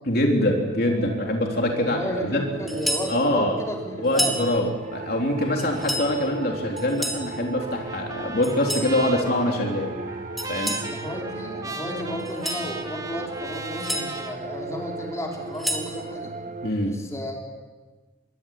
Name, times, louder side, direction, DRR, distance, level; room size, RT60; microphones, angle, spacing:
voice 1, 0.1-2.0 2.3-2.4 3.1-3.6 4.0-9.9 10.5-10.8 16.6-17.0, left 1 dB, 55° left, 1 dB, 3.9 m, -24 dB
sound 1, 0.9-16.7, right 3 dB, 45° right, 1.4 m, -37 dB
voice 2, 1.8-4.7 10.8-16.3 16.8-17.6, equal, 15° left, -1 dB, 5.1 m, -33 dB
sound 2, 2.7-3.1 4.0-4.4 5.6-6.1 6.8-7.3 8.4-8.9 10.4-10.9 12.2-12.7 13.5-14.0 15.3-15.9, equal, ahead, 3.4 m, -29 dB
Trumpet, 7.6-14.4, right 3 dB, 20° right, 1.7 m, -37 dB
26.5 x 23.0 x 9.4 m, 1.3 s
head